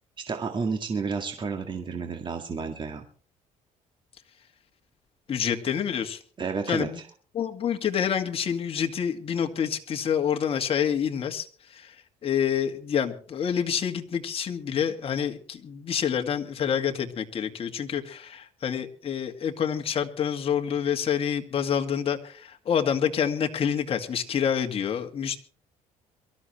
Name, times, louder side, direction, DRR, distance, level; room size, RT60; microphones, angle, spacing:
voice 1, 0.3-3.1 6.4-6.9, right 5 dB, 35° right, 5 dB, 1.9 m, -31 dB
voice 2, 5.3-6.2 6.7-7.0 7.3-12.0 12.2-25.4, left 8 dB, 45° left, 5 dB, 2.1 m, -27 dB
23.0 x 13.5 x 3.2 m, 0.43 s
cardioid pair, 115°, 14 cm